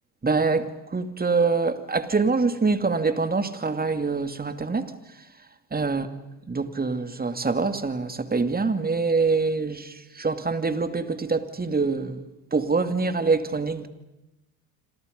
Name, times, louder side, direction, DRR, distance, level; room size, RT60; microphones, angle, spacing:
voice 1, 0.2-4.9 5.7-6.1 6.5-12.2 12.5-13.9, right 4 dB, 20° right, 2.5 m, -25 dB
27.5 x 27.5 x 5.3 m
hypercardioid pair, 70°, 45 cm